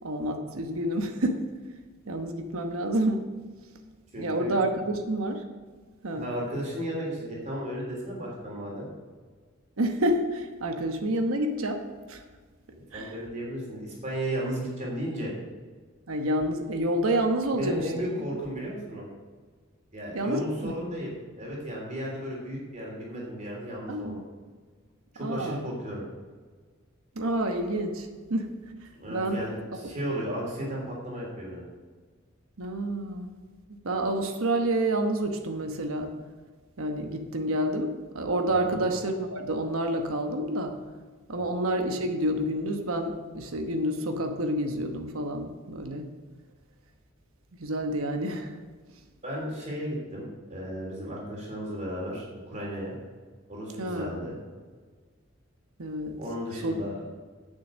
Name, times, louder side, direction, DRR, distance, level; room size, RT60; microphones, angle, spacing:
voice 1, 0.0-1.4 2.1-3.2 4.2-5.4 6.0-6.3 9.8-11.8 12.1-12.2 12.9-13.2 16.1-18.1 20.1-20.7 23.9-24.2 25.2-25.6 27.1-28.5 29.1-29.4 32.6-33.3 33.7-36.1 36.8-40.8 41.3-46.1 47.6-48.6 53.8-54.1 55.8-56.2 56.6-56.8, right 1 dB, 80° right, 5 dB, 1.1 m, -28 dB
voice 2, 4.1-4.6 6.1-8.9 12.9-15.3 17.5-19.1 19.9-21.1 21.4-24.2 25.1-26.0 29.0-31.6 38.6-38.8 41.4-41.5 49.2-52.9 53.5-54.3 56.2-57.0, equal, 35° right, -3 dB, 3.3 m, -34 dB
9.1 x 6.8 x 6.2 m, 1.5 s
head